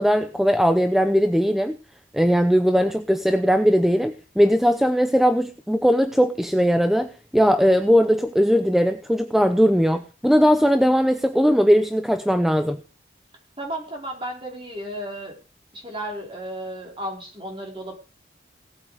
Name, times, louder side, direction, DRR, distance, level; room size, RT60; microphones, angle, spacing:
voice 1, 0.0-1.8 2.1-12.8, equal, ahead, 9 dB, 0.6 m, -19 dB
voice 2, 13.6-15.4 15.7-17.9, right 1 dB, 30° right, 1 dB, 5.0 m, -33 dB
18.0 x 8.7 x 5.1 m, 0.33 s
head